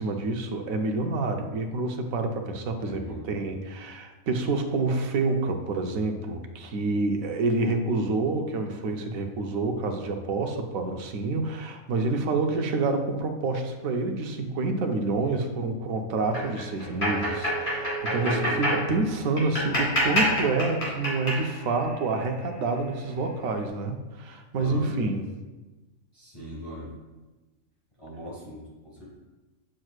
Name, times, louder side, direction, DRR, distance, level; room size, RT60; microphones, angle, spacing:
voice 1, 0.0-25.3, right 3 dB, 80° right, 5 dB, 1.1 m, -28 dB
voice 2, 2.8-3.5 18.2-18.7 24.6-25.1 26.1-26.9 28.0-29.1, left 1 dB, 25° left, -6 dB, 1.5 m, -38 dB
sound 1, 16.2-23.0, equal, 40° left, 2.5 m, -29 dB
7.6 x 6.0 x 2.4 m, 1.2 s
omnidirectional pair, 1.4 m